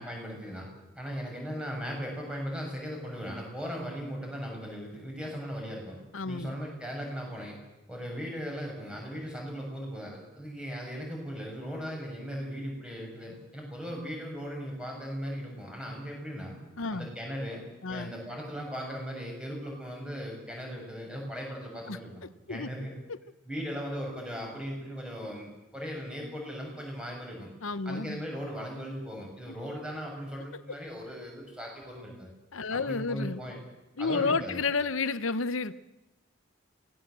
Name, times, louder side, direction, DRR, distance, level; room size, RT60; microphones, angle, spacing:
voice 1, 0.0-6.0 6.2-7.6 7.9-16.6 16.9-17.6 17.9-22.1 22.5-22.9 23.5-27.5 27.8-32.3 32.7-33.6 34.0-34.6, equal, 5° right, -1 dB, 6.6 m, -38 dB
voice 2, 6.1-6.5 16.8-17.1 17.8-18.1 21.9-22.7 23.1-23.2 27.6-28.2 29.5-29.6 30.7-30.8 32.5-33.4 34.0-35.7, left 4 dB, 90° left, 14 dB, 1.0 m, -31 dB
24.0 x 18.5 x 7.6 m, 0.99 s
head